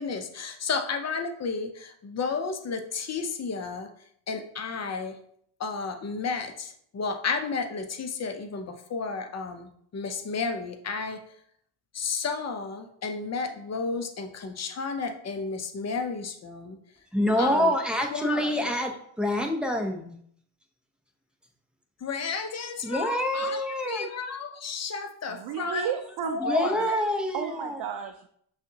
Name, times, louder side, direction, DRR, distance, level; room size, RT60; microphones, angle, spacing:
voice 1, 0.0-3.9 4.3-5.1 5.6-11.2 11.9-16.8 17.4-17.7 18.1-18.7 22.0-25.9 26.2-26.9, left 4 dB, 35° left, 0.7 m, -32 dB
voice 2, 17.1-20.1 22.8-24.1 25.7-25.9 26.4-27.8, equal, ahead, 0.7 m, -26 dB
voice 3, 25.3-27.0 27.3-28.3, right 8 dB, 55° right, 0.5 m, -33 dB
6.2 x 2.4 x 2.8 m
supercardioid pair, 65°, 48 cm